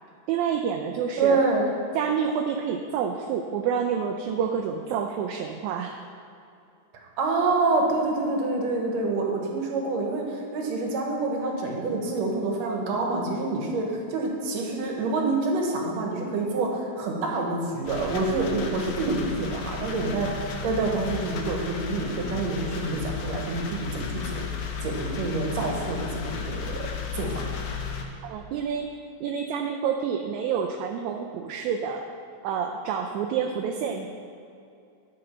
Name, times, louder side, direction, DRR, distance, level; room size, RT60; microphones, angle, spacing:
voice 1, 0.3-1.4 2.0-6.0 28.2-28.9 29.2-32.1 32.4-34.1, right 7 dB, 80° right, 3 dB, 1.8 m, -28 dB
voice 2, 1.2-1.7 7.2-26.9 27.1-27.3, right 3 dB, 65° right, 0 dB, 2.3 m, -27 dB
sound 1, 17.8-28.0, left 5 dB, 75° left, 2.2 m, -34 dB
11.5 x 6.6 x 4.4 m, 2.5 s
omnidirectional pair, 3.5 m